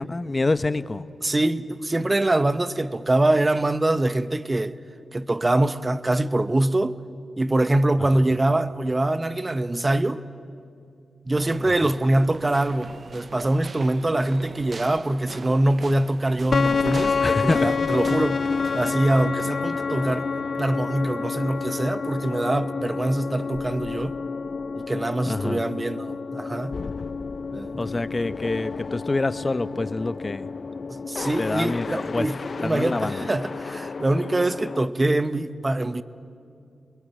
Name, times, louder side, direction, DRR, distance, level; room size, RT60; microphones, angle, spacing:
voice 1, 0.0-1.0 8.0-8.1 11.7-11.9 17.2-17.7 25.2-25.6 27.8-30.5 31.4-32.3 32.6-33.2, left 2 dB, 35° left, 0.9 m, -26 dB
voice 2, 1.2-4.7 5.1-7.0 7.4-10.2 11.3-18.4 18.7-20.3 20.5-24.2 24.8-26.8 27.5-27.9 30.9-36.0, right 1 dB, 30° right, 1.0 m, -24 dB
sound 1, 11.3-18.9, right 4 dB, 60° right, 0.9 m, -42 dB
sound 2, 16.5-34.9, left 5 dB, 60° left, 0.6 m, -29 dB
28.0 x 21.5 x 9.4 m
cardioid pair, 55°, 0 cm